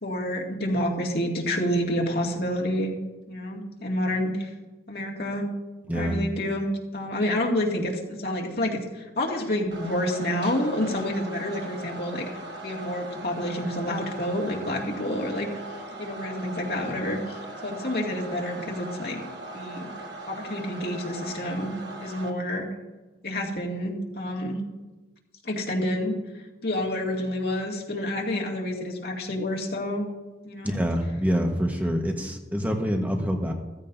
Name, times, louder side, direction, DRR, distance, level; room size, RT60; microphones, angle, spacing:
voice 1, 0.0-2.9 3.3-4.5 4.9-5.5 5.9-6.7 6.9-12.3 12.6-15.5 16.0-19.9 20.3-21.7 22.0-22.7 23.2-24.6 25.4-26.2 26.6-30.1 30.4-30.8, left 1 dB, 60° left, -1 dB, 2.3 m, -28 dB
sound 1, 9.7-22.3, right 2 dB, 85° right, 1.3 m, -39 dB
voice 2, 30.6-33.5, equal, 10° right, 2 dB, 1.3 m, -26 dB
16.0 x 14.5 x 2.7 m, 1.1 s
head